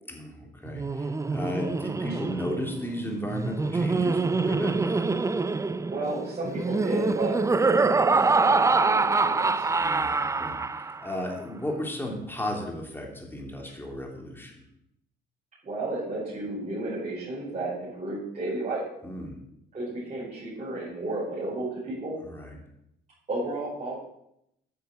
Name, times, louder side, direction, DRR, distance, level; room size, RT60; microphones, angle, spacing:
voice 1, 0.1-5.1 9.8-14.5 19.0-19.4 22.2-22.5, left 1 dB, 10° left, 0 dB, 3.1 m, -34 dB
Laughter, 0.7-11.1, right 3 dB, 15° right, 0.4 m, -25 dB
voice 2, 5.8-9.7 13.6-13.7 15.6-18.8 19.7-22.2 23.3-24.0, right 2 dB, 35° right, -8 dB, 5.0 m, -33 dB
9.5 x 6.5 x 7.1 m, 0.79 s
cardioid pair, 90°, 20 cm